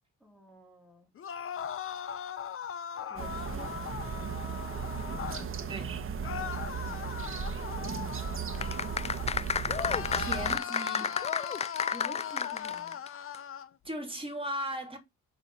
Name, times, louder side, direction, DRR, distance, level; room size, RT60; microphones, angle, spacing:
voice 1, 0.2-1.1 2.9-3.8 11.7-13.0, equal, ahead, 2.3 m, -50 dB
sound 1, 1.1-5.5 6.2-9.4 9.7-13.7, left 9 dB, 45° left, 0.8 m, -39 dB
sound 2, 3.2-10.6, right 6 dB, 45° right, 1.5 m, -36 dB
voice 2, 5.6-6.0 10.2-11.2 13.8-15.0, equal, 20° right, 3.0 m, -37 dB
sound 3, 8.5-13.1 13.3-13.4, left 6 dB, 20° left, 0.4 m, -32 dB
6.1 x 5.1 x 5.8 m
cardioid pair, 90°, 30 cm